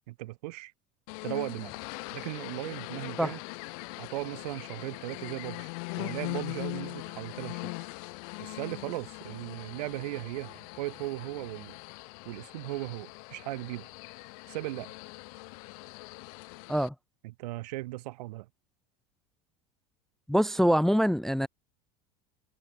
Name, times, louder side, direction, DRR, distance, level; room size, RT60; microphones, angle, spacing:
voice 1, 0.1-0.7 1.2-1.7 2.1-3.4 4.0-5.7 6.0-7.7 8.4-11.8 12.3-13.9 14.5-14.9 17.2-18.5, right 19 dB, 85° right, 2.0 m, -37 dB
sound 1, 1.1-16.9, left 32 dB, 70° left, 0.7 m, -41 dB
voice 2, 20.3-21.5, equal, ahead, 0.4 m, -24 dB
supercardioid pair, 130°, 20 cm